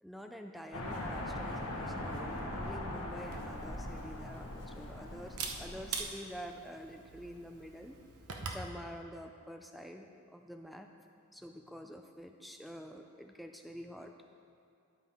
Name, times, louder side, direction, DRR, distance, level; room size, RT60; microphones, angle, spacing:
voice 1, 0.0-8.0 8.5-10.9 11.3-14.1, equal, ahead, 4 dB, 0.3 m, -47 dB
sound 1, 0.7-6.0, left 1 dB, 85° left, 1.1 m, -40 dB
Camera, 3.2-8.7, right 5 dB, 85° right, 0.8 m, -45 dB
11.0 x 5.4 x 4.3 m, 2.4 s
head